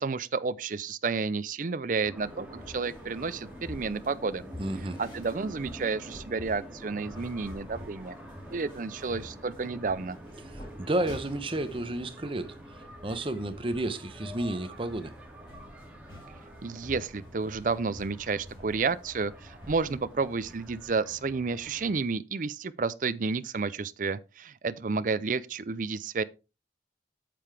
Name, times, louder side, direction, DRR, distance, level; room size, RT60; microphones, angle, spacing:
voice 1, 0.0-4.4 5.0-8.1 8.5-10.2 16.6-26.2, right 4 dB, 50° right, 0.5 m, -31 dB
sound 1, 2.0-22.0, equal, 5° right, 2.3 m, -47 dB
sound 2, 2.2-20.9, left 1 dB, 25° left, 4.5 m, -50 dB
voice 2, 4.6-5.0 10.4-15.1, right 1 dB, 30° right, 0.9 m, -32 dB
8.5 x 7.7 x 3.3 m
head